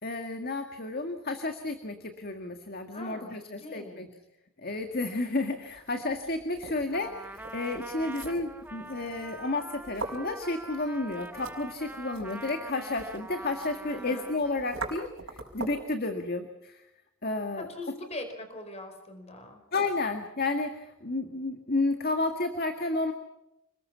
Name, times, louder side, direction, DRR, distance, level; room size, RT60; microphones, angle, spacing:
voice 1, 0.0-4.1 4.6-16.8 17.2-17.7 19.7-23.1, left 2 dB, 45° left, 6 dB, 1.9 m, -31 dB
voice 2, 2.9-4.1 13.9-14.3 17.6-19.6, left 1 dB, 30° left, 6 dB, 4.8 m, -42 dB
sound 1, 5.7-15.9, right 2 dB, 60° right, 4.9 m, -43 dB
Trumpet, 6.9-14.8, right 2 dB, 10° right, 0.8 m, -44 dB
29.5 x 21.0 x 5.8 m, 0.87 s
head